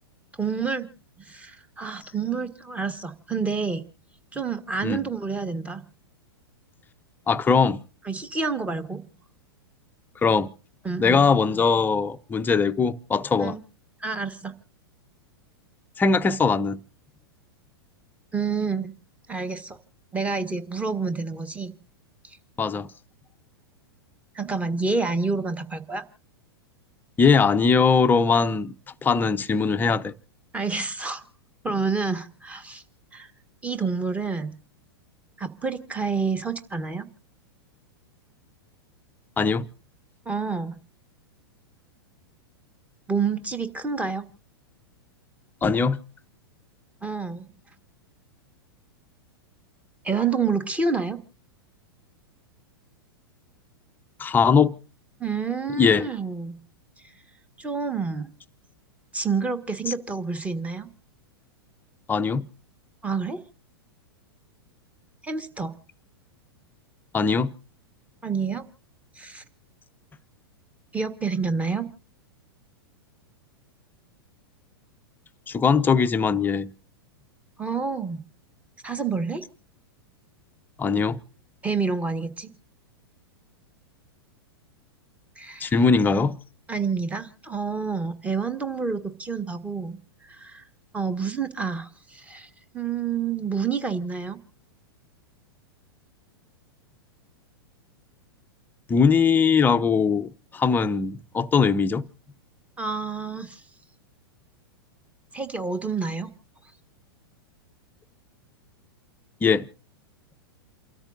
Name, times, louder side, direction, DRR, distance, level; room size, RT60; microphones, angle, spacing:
voice 1, 0.4-0.9 1.2-3.8 4.3-5.8 8.0-9.0 10.8-11.3 13.4-13.6 14.0-14.5 18.3-18.9 19.3-19.8 20.1-21.7 22.2-22.4 24.3-26.0 30.5-31.2 31.6-32.8 33.1-33.3 33.6-34.5 35.4-37.1 40.2-40.8 43.1-44.3 47.0-47.5 50.0-51.2 55.2-56.6 57.6-58.3 59.1-60.9 63.0-63.4 65.2-65.7 68.2-68.7 69.2-69.4 70.9-71.9 77.6-78.2 78.8-79.4 81.6-82.5 85.4-85.7 86.7-90.6 90.9-92.5 92.7-94.4 102.8-103.6 105.3-106.3, right 5 dB, 10° right, 1.5 m, -28 dB
voice 2, 7.3-7.8 10.2-10.5 11.0-13.6 16.0-16.8 22.6-22.9 27.2-28.7 29.0-30.1 39.4-39.7 45.6-46.0 54.2-54.7 55.8-56.1 62.1-62.4 67.1-67.5 75.5-76.7 80.8-81.2 85.6-86.4 98.9-102.0 109.4-109.7, left 5 dB, 15° left, 0.8 m, -21 dB
29.0 x 13.5 x 2.6 m
figure-of-eight pair, 100°, 13 cm